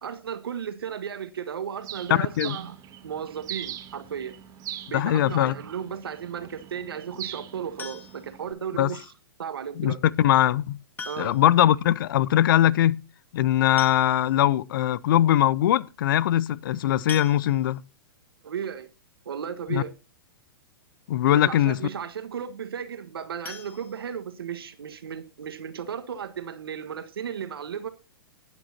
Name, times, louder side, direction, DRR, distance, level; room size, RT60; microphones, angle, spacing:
voice 1, 0.0-2.7 3.0-4.3 4.9-9.1 9.4-10.0 11.0-11.4 18.4-18.9 19.2-19.9 21.3-27.9, right 8 dB, 80° right, 1.4 m, -35 dB
Bird, 1.8-8.5, right 11 dB, 30° right, 1.6 m, -41 dB
voice 2, 2.1-2.6 4.9-5.5 8.8-8.9 9.8-10.8 11.2-13.0 13.3-17.8 19.7-19.8 21.1-21.8, left 12 dB, 60° left, 0.6 m, -21 dB
sound 1, 7.8-8.4 9.9-10.0 11.0-11.6 11.9-12.0 12.3-12.4 13.4-13.5 13.8-14.5 15.0-15.1 15.5-15.7 17.1-17.9 23.4-24.6 25.0-25.1 25.5-25.6 26.0-26.1, left 5 dB, 15° left, 1.4 m, -41 dB
19.0 x 9.1 x 2.8 m
hypercardioid pair, 120°, 12 cm